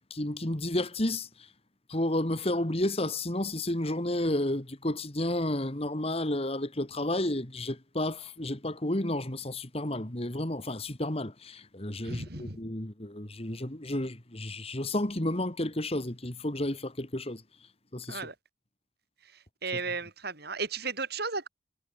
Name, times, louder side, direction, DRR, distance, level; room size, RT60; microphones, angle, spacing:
voice 1, 0.1-1.3 1.9-17.4 17.9-18.2, left 1 dB, 30° left, 2.0 m, -31 dB
voice 2, 12.0-12.6 18.1-18.3 19.6-21.5, right 4 dB, 55° right, 7.9 m, -34 dB
head